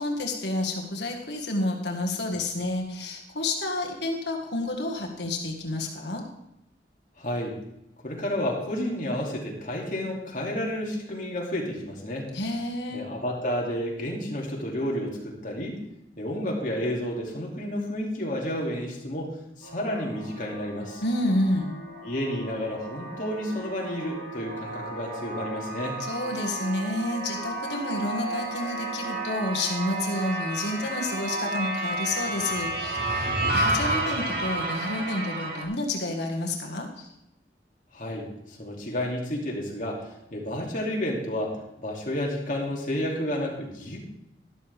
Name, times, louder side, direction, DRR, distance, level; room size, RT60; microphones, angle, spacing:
voice 1, 0.0-6.2 12.3-13.1 21.0-21.7 26.0-37.1, left 2 dB, 80° left, 1 dB, 1.8 m, -30 dB
voice 2, 7.2-7.6 8.0-12.3 12.9-15.8 16.2-19.3 19.6-21.0 22.0-26.0 37.9-44.0, equal, 45° left, -2 dB, 2.7 m, -31 dB
sound 1, 19.6-35.6, right 2 dB, 65° right, 2.4 m, -32 dB
12.5 x 12.0 x 3.5 m, 0.83 s
head